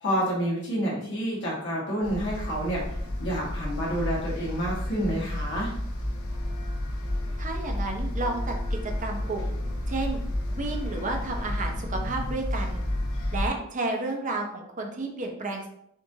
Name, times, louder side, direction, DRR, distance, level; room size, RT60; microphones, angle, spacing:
voice 1, 0.0-2.8 3.2-5.7, equal, 55° left, -5 dB, 1.5 m, -28 dB
sound 1, 2.0-13.5, left 1 dB, 80° left, 0.9 m, -31 dB
voice 2, 7.4-8.5 9.0-9.5 9.9-10.2 10.5-12.8 13.3-15.7, right 2 dB, 35° right, 2 dB, 0.7 m, -31 dB
7.2 x 2.5 x 2.7 m, 0.72 s
head